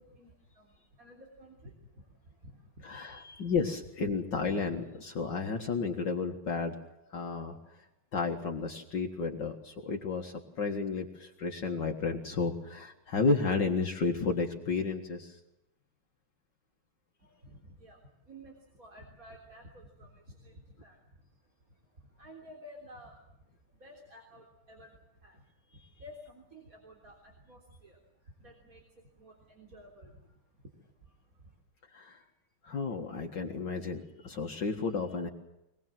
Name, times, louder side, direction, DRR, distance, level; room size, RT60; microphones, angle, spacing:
voice 1, 0.0-3.4 17.2-23.4 23.7-25.4 25.7-31.6, equal, 40° right, 0 dB, 4.0 m, -54 dB
voice 2, 2.8-6.7 7.1-7.6 8.1-15.4 31.9-32.2 32.6-35.3, left 4 dB, 60° left, 3 dB, 2.3 m, -32 dB
24.5 x 20.5 x 7.6 m, 0.91 s
omnidirectional pair, 2.3 m